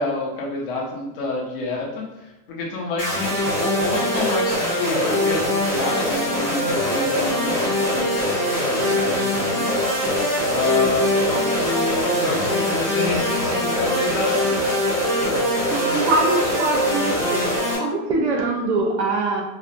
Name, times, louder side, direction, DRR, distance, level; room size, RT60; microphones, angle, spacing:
voice 1, 0.0-10.2 10.5-14.7, left 3 dB, 35° left, -1 dB, 0.7 m, -28 dB
sound 1, 3.0-17.8, left 1 dB, 15° right, 0.9 m, -22 dB
voice 2, 15.7-17.5 17.8-19.4, right 3 dB, 45° right, 1 dB, 0.6 m, -23 dB
4.2 x 2.3 x 2.5 m, 0.96 s
supercardioid pair, 160°, 47 cm